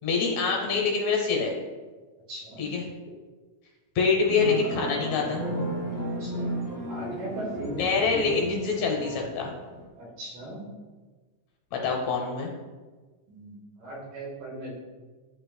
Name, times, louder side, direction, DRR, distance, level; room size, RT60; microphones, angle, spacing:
voice 1, 0.0-1.5 2.6-2.8 4.0-5.4 7.8-9.5 11.7-12.5, left 5 dB, 70° left, 0 dB, 2.0 m, -25 dB
voice 2, 2.3-2.6 6.2-6.6 6.9-7.8 8.1-8.6 10.0-10.6 13.3-14.8, right 1 dB, 85° right, -4 dB, 3.5 m, -37 dB
sound 1, 4.3-9.9, right 1 dB, 10° left, 1.1 m, -34 dB
10.5 x 5.3 x 2.2 m, 1.3 s
omnidirectional pair, 3.7 m